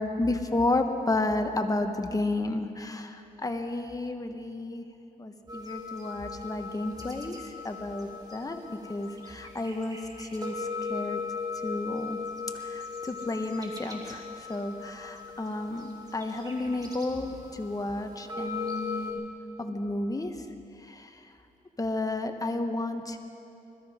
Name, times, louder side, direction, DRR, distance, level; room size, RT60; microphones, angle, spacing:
voice 1, 0.2-4.8 5.2-8.6 8.9-11.2 11.6-12.2 12.5-19.2 19.6-20.3 20.9-21.2 21.8-23.2, left 2 dB, 25° left, 6 dB, 1.3 m, -32 dB
sound 1, 5.5-19.1, left 4 dB, 25° right, 2.6 m, -39 dB
21.0 x 13.5 x 5.1 m, 2.7 s
cardioid pair, 70°, 15 cm